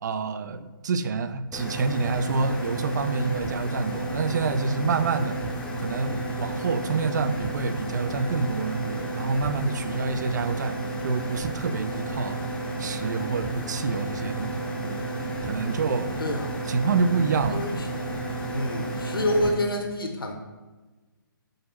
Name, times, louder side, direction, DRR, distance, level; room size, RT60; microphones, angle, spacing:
voice 1, 0.0-5.4 5.8-10.8 11.0-12.4 12.8-15.1 15.4-16.2 16.7-17.6, right 4 dB, 55° right, 11 dB, 0.5 m, -27 dB
sound 1, 1.5-19.5, right 2 dB, 10° left, 0.7 m, -32 dB
voice 2, 16.2-16.5 17.5-17.9 18.5-20.3, left 1 dB, 70° left, 2 dB, 1.1 m, -27 dB
5.1 x 4.0 x 5.8 m, 1.2 s
figure-of-eight pair, 135°, 12 cm